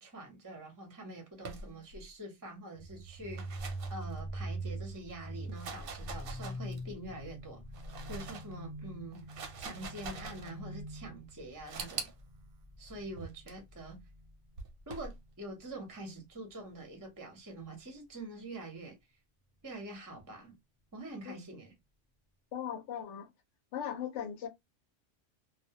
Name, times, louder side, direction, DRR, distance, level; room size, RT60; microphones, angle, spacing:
voice 1, 0.0-7.6 8.1-9.3 9.6-12.1 12.8-14.0 14.9-19.0 19.6-20.6 20.9-21.7, right 1 dB, 20° right, 0.5 m, -45 dB
sound 1, 1.4-2.1 3.1-4.6 5.3-7.0 7.6-8.5 9.1-10.5 11.6-12.1 13.2-13.5 14.6-15.2, right 3 dB, 60° right, 0.7 m, -45 dB
sound 2, 2.8-14.3, right 1 dB, 50° left, 0.4 m, -44 dB
sound 3, 11.8-14.6 14.9-15.7 16.0-16.1 16.9-17.0, right 7 dB, 90° right, 0.9 m, -45 dB
voice 2, 22.5-23.3 23.7-24.5, left 9 dB, 70° left, 0.9 m, -38 dB
2.1 x 2.1 x 2.7 m
omnidirectional pair, 1.2 m